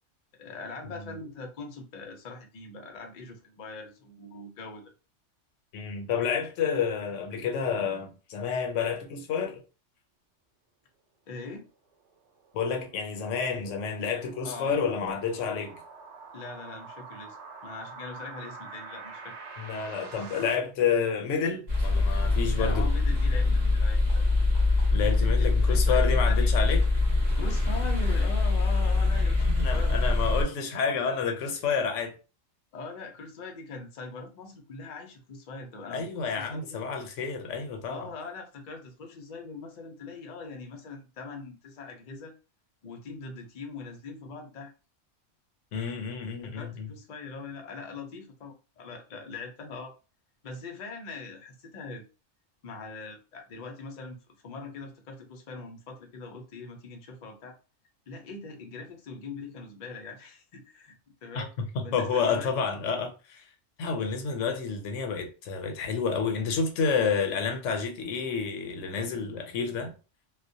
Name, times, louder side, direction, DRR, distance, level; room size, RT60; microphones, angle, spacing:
voice 1, 0.4-4.9 11.3-11.7 14.4-14.8 16.3-17.4 17.6-19.4 22.6-24.2 25.0-26.8 27.4-29.9 32.7-36.8 37.9-42.3 42.8-44.7 46.4-49.9 50.4-52.0 52.6-57.6 58.1-60.9 61.2-61.5 61.8-62.5, left 3 dB, 55° left, 0.5 m, -42 dB
voice 2, 5.7-9.6 12.5-15.8 19.6-22.9 24.9-26.8 29.4-32.2 35.9-38.1 45.7-46.9 61.3-61.4 61.7-63.4 63.8-69.9, left 6 dB, 80° left, 0.9 m, -29 dB
sound 1, 11.9-20.5, right 4 dB, 70° right, 1.0 m, -46 dB
sound 2, 21.7-30.4, left 3 dB, 40° right, 0.8 m, -23 dB
2.3 x 2.1 x 2.6 m
omnidirectional pair, 1.3 m